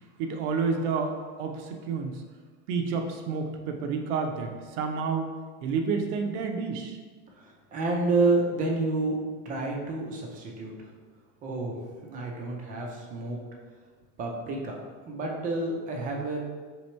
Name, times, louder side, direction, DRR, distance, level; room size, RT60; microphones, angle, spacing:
voice 1, 0.2-2.2 2.7-5.3 5.6-7.0, right 5 dB, 90° right, 4 dB, 0.7 m, -30 dB
voice 2, 7.4-9.2 9.4-10.9 11.4-11.8 12.1-13.4 14.2-14.8 15.1-16.4, right 3 dB, 25° right, 0 dB, 0.4 m, -29 dB
3.4 x 3.0 x 4.3 m, 1.5 s
cardioid pair, 170°, 34 cm